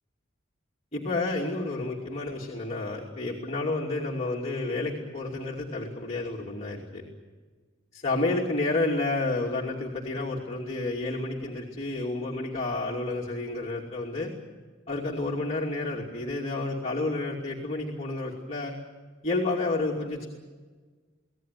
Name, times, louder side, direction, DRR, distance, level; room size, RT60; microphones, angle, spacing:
voice 1, 0.9-7.0 8.0-14.3 14.9-18.8 19.2-20.3, left 2 dB, 35° left, -2 dB, 2.7 m, -30 dB
25.0 x 17.5 x 9.4 m, 1.4 s
head